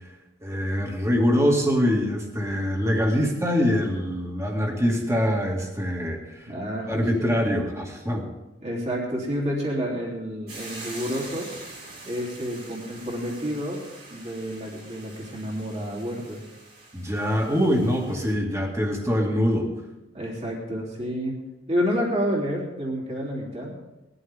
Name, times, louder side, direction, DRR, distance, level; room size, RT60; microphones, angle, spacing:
voice 1, 0.4-6.5 6.9-8.2 16.9-19.7, equal, 15° right, 0 dB, 2.3 m, -24 dB
voice 2, 6.4-7.3 8.6-11.5 12.0-16.4 20.1-21.4 21.7-23.7, equal, 35° right, -3 dB, 3.3 m, -29 dB
Hiss / Boiling, 10.5-18.3, right 2 dB, 55° right, 5.1 m, -44 dB
19.0 x 14.0 x 3.6 m, 1.0 s
head